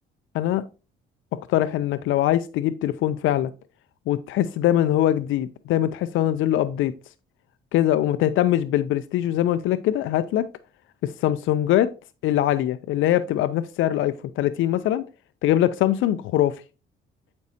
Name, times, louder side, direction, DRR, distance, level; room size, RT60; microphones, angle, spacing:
voice 1, 1.5-3.5 4.1-6.9 7.7-10.5 11.0-11.9 12.2-15.0 15.4-16.6, left 12 dB, 80° left, 0.4 m, -22 dB
8.2 x 5.2 x 2.7 m
cardioid pair, 90°, 20 cm